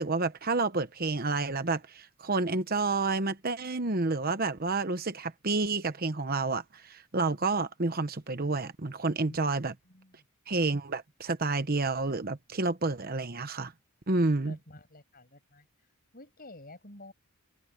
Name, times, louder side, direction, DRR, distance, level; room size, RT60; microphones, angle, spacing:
voice 1, 0.0-9.7 10.5-13.7 14.1-14.6, right 3 dB, 40° right, 1.0 m, -29 dB
voice 2, 9.8-10.3 14.4-15.7 16.1-17.1, left 1 dB, 40° left, 7.5 m, -50 dB
head